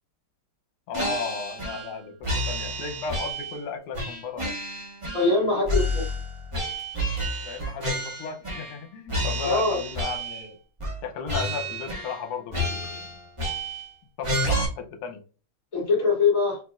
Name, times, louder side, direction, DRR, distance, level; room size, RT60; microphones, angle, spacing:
voice 1, 0.9-4.5 7.4-10.6 11.0-13.2 14.2-15.2, left 5 dB, 85° left, 6 dB, 1.7 m, -35 dB
sound 1, 0.9-1.9 2.2-3.6 3.9-5.4 5.6-8.8 9.1-10.5 10.8-11.0 11.3-12.2 12.5-13.9 14.2-14.6, equal, 20° right, 0.8 m, -30 dB
voice 2, 5.1-6.0 9.4-9.8 15.7-16.6, left 3 dB, 40° left, -3 dB, 2.7 m, -22 dB
5.0 x 3.0 x 2.4 m, 0.36 s
omnidirectional pair, 2.4 m